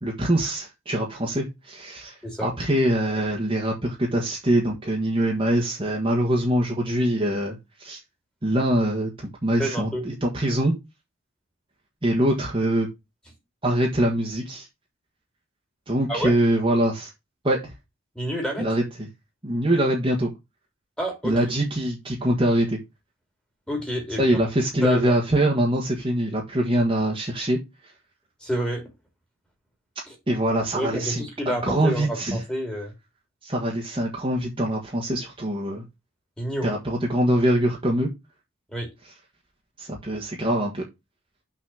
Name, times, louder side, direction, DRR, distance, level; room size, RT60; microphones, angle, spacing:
voice 1, 0.0-2.1 2.4-8.0 8.4-10.7 12.0-12.9 13.6-14.7 15.9-17.1 17.4-17.7 18.6-19.1 19.4-20.3 21.2-22.8 24.2-27.6 30.3-32.4 33.4-35.8 36.6-38.1 39.8-40.8, right 1 dB, 25° right, -1 dB, 1.4 m, -23 dB
voice 2, 9.6-10.0 16.1-16.3 18.1-18.6 21.0-21.3 23.7-24.4 24.8-25.2 28.4-28.8 30.1-30.2 30.7-32.9 36.4-36.7 38.7-38.9, equal, 5° left, 2 dB, 2.4 m, -28 dB
6.1 x 4.1 x 6.3 m, 0.23 s
head